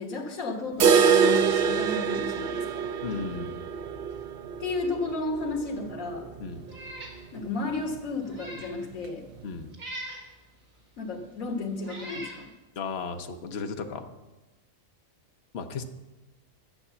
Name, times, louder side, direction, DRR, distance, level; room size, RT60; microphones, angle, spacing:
voice 1, 0.0-2.9 4.6-6.3 7.3-9.3 11.0-12.5, left 2 dB, 80° left, 2 dB, 1.9 m, -33 dB
sound 1, 0.8-6.6 6.9-7.0 7.4-7.5 8.0-8.1 8.9-9.0, right 6 dB, 50° right, 0.8 m, -25 dB
voice 2, 3.0-3.6 6.4-6.6 9.4-9.7 12.8-14.1 15.5-15.8, left 5 dB, 55° left, 6 dB, 1.1 m, -35 dB
Meow, 6.7-7.2 7.6-7.7 8.2-8.8 9.7-10.3 11.1-11.2 11.8-12.4, right 1 dB, 75° right, 2.8 m, -40 dB
12.0 x 8.2 x 6.9 m, 1.1 s
omnidirectional pair, 1.4 m